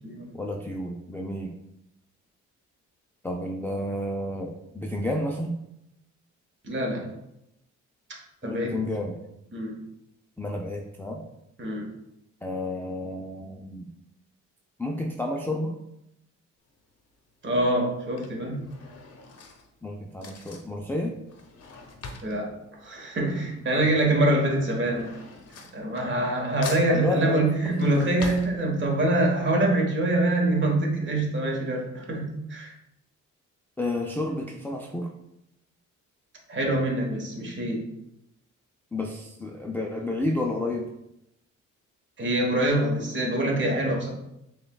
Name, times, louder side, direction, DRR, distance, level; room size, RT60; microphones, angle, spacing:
voice 1, 0.3-1.5 3.2-5.6 8.4-9.1 10.4-11.2 12.4-13.9 14.8-15.8 19.8-21.2 26.9-27.5 27.8-27.9 33.8-35.1 38.9-40.9, left 1 dB, 5° left, 0 dB, 0.3 m, -30 dB
voice 2, 6.6-7.1 8.4-8.7 9.5-9.8 11.6-11.9 17.4-18.6 22.2-22.5 22.8-25.1 25.7-32.7 36.5-37.9 42.2-44.1, right 1 dB, 40° right, 0 dB, 1.2 m, -25 dB
Drawer open or close / Cutlery silverware, 16.6-17.0 17.8-23.7 24.0-26.4 26.6-29.1 29.6-29.7 29.9-30.0, left 4 dB, 55° left, 0.7 m, -43 dB
6.7 x 2.3 x 2.3 m, 0.83 s
cardioid pair, 90°, 30 cm